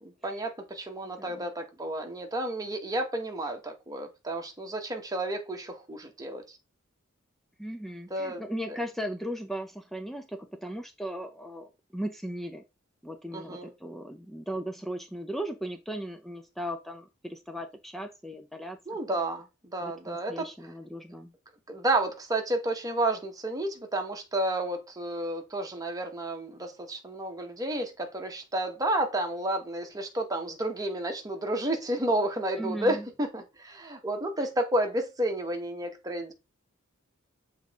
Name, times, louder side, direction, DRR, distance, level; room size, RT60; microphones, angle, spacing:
voice 1, 0.0-6.4 8.1-8.4 8.7-8.8 13.3-13.7 18.9-19.4 19.7-20.5 21.7-36.3, right 1 dB, 15° right, 1.1 m, -31 dB
voice 2, 7.6-12.6 13.0-19.0 19.8-21.3 32.6-33.1, equal, ahead, 0.5 m, -37 dB
7.1 x 3.8 x 3.5 m
head